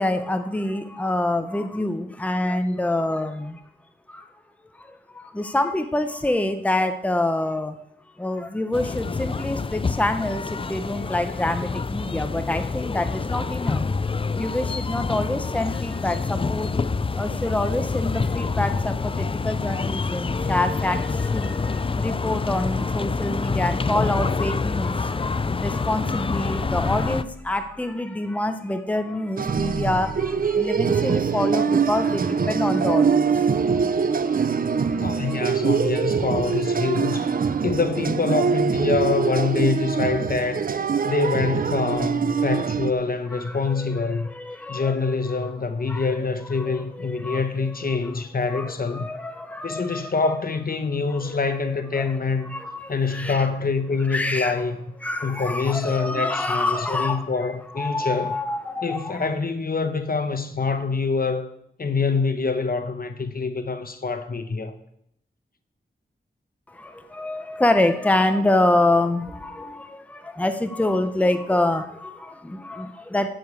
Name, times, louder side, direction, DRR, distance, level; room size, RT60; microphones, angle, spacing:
voice 1, 0.0-3.6 4.1-4.3 4.8-7.8 8.2-13.9 14.3-16.7 17.1-25.3 25.6-33.8 34.2-34.4 34.6-35.4 41.0-41.1 43.3-45.5 45.9-46.1 46.5-48.1 48.5-50.1 51.2-51.4 52.0-52.1 52.5-53.5 54.1-54.6 55.0-57.3 57.7-59.2 66.7-73.3, left 1 dB, 5° left, 0.7 m, -26 dB
Park ambience in Moscow, 8.7-27.2, left 4 dB, 30° left, 0.4 m, -27 dB
sound 1, 26.4-27.9 29.5-30.9, right 1 dB, 65° right, 1.1 m, -40 dB
sound 2, 29.4-42.9, right 6 dB, 50° right, 0.5 m, -23 dB
voice 2, 35.0-37.3 37.6-40.7 41.0-44.3 44.7-49.1 49.6-52.5 52.9-54.8 55.2-58.4 58.8-61.5 61.8-64.7, left 4 dB, 50° left, 0.9 m, -25 dB
7.8 x 6.9 x 8.3 m
wide cardioid pair, 95°, 19 cm